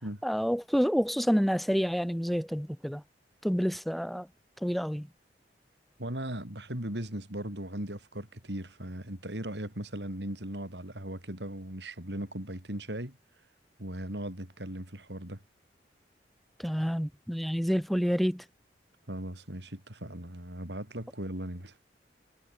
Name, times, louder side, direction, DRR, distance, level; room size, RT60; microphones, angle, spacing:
voice 1, 0.2-3.0 3.4-4.3 4.6-5.1 16.6-18.4, equal, ahead, 1.3 m, -28 dB
voice 2, 6.0-13.2 13.8-15.4 19.1-21.7, right 1 dB, 80° right, 6.2 m, -38 dB
head